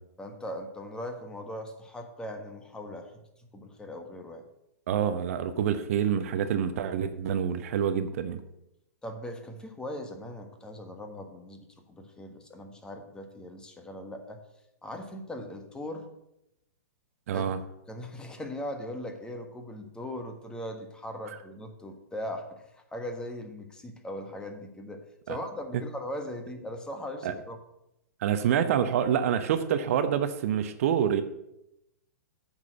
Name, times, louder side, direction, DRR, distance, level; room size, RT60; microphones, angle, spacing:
voice 1, 0.2-3.1 3.4-4.4 9.0-14.4 14.8-16.1 17.3-17.4 17.9-27.6, left 1 dB, 10° left, 5 dB, 1.4 m, -39 dB
voice 2, 4.9-8.4 17.3-17.6 21.3-21.4 25.3-25.4 27.2-27.3 28.2-31.2, right 8 dB, 55° right, 10 dB, 0.9 m, -27 dB
8.4 x 6.6 x 7.7 m, 0.86 s
hypercardioid pair, 115°, 9 cm